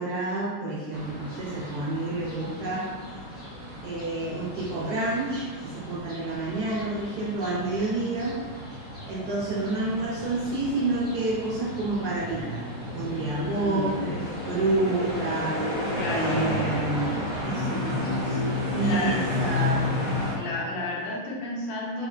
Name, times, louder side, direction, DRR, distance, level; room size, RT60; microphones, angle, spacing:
voice 1, 0.0-2.9 3.8-8.4 9.1-12.6 12.9-15.7 16.1-18.5 18.7-20.4, right 2 dB, 65° right, -7 dB, 1.0 m, -29 dB
sound 1, 0.9-20.3, left 1 dB, 10° left, 0.6 m, -32 dB
voice 2, 13.3-14.1 15.9-16.4 18.8-19.2 20.3-22.1, left 2 dB, 80° left, -4 dB, 1.4 m, -31 dB
3.8 x 2.1 x 2.3 m, 1.4 s
omnidirectional pair, 2.1 m